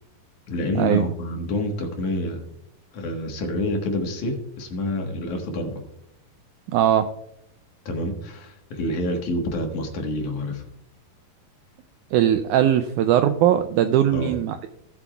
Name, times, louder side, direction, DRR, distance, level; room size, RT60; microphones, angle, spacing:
voice 1, 0.5-2.4 2.9-5.8 7.9-10.6 14.1-14.4, left 1 dB, 65° left, 3 dB, 2.7 m, -28 dB
voice 2, 6.7-7.1 12.1-14.7, right 10 dB, 85° right, 9 dB, 1.8 m, -20 dB
17.5 x 7.5 x 2.3 m, 0.79 s
omnidirectional pair, 4.0 m